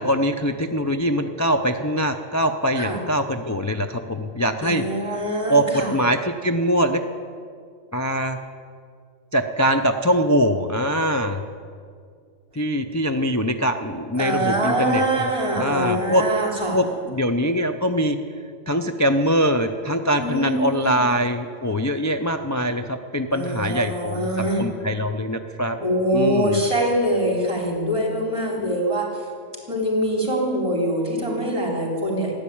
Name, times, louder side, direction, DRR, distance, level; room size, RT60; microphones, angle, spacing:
voice 1, 0.0-4.8 5.5-7.0 7.9-8.4 9.3-11.4 12.5-16.2 16.7-18.2 18.7-25.8 26.1-26.6, equal, 25° left, 5 dB, 0.4 m, -23 dB
voice 2, 4.6-6.0 14.2-16.8 20.2-21.1 23.3-24.6 25.8-29.3 29.7-32.3, right 1 dB, 25° right, -2 dB, 3.7 m, -24 dB
15.0 x 10.5 x 8.7 m, 2.2 s
omnidirectional pair, 1.3 m